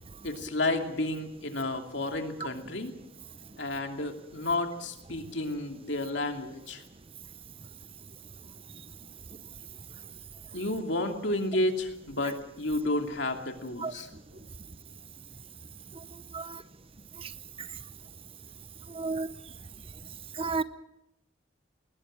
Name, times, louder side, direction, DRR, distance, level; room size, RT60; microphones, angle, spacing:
voice 1, 0.2-2.9 3.6-6.8 10.5-14.1, left 2 dB, 60° left, 5 dB, 2.7 m, -31 dB
voice 2, 18.9-19.3 20.4-20.6, right 4 dB, 30° right, 14 dB, 0.7 m, -31 dB
21.0 x 20.0 x 6.7 m, 0.84 s
head